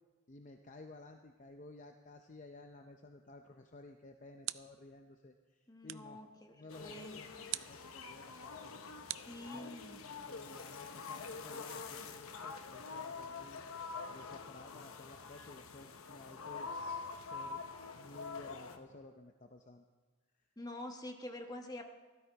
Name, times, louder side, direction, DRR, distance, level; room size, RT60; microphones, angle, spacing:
voice 1, 0.3-6.2 6.5-7.3 7.7-9.0 9.5-16.7 17.2-17.6 18.0-19.8, left 2 dB, 35° left, 5 dB, 0.6 m, -55 dB
sound 1, 3.8-5.0 5.9-6.2 7.5-7.9 9.1-10.0, right 16 dB, 60° right, 0.4 m, -44 dB
voice 2, 5.7-7.5 9.2-10.1 20.6-21.8, left 1 dB, 20° left, 4 dB, 1.1 m, -47 dB
sound 2, 6.7-18.8, left 4 dB, 85° left, 1.0 m, -46 dB
16.0 x 13.0 x 4.6 m, 1.4 s
head